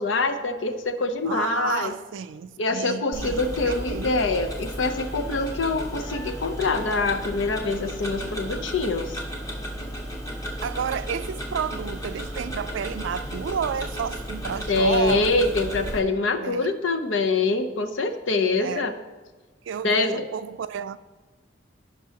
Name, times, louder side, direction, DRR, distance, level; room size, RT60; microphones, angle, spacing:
voice 1, 0.0-1.9 2.6-9.2 14.7-18.9 19.8-20.3, left 3 dB, 80° left, 0.7 m, -25 dB
voice 2, 1.2-4.2 10.6-15.5 16.4-16.8 18.5-18.9 19.6-21.0, right 7 dB, 75° right, 0.4 m, -31 dB
Tick-tock, 3.1-16.0, equal, 20° left, 1.1 m, -34 dB
16.0 x 5.3 x 2.8 m
head